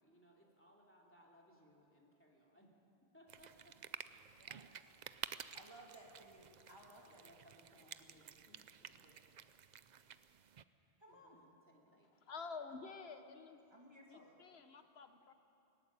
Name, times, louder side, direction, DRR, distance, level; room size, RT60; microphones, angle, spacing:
voice 1, 0.0-2.7 3.1-4.5 6.8-9.5 11.1-12.1, equal, 10° left, -2 dB, 2.9 m, -67 dB
sound 1, 3.3-10.6, right 8 dB, 50° right, 0.6 m, -52 dB
voice 2, 4.3-4.7 5.5-7.9 11.0-11.4 12.7-12.8 13.7-14.3, right 1 dB, 25° right, -2 dB, 2.8 m, -60 dB
voice 3, 12.2-13.6 14.1-15.3, left 4 dB, 80° left, 8 dB, 1.2 m, -50 dB
19.0 x 15.0 x 9.9 m, 2.7 s
omnidirectional pair, 1.0 m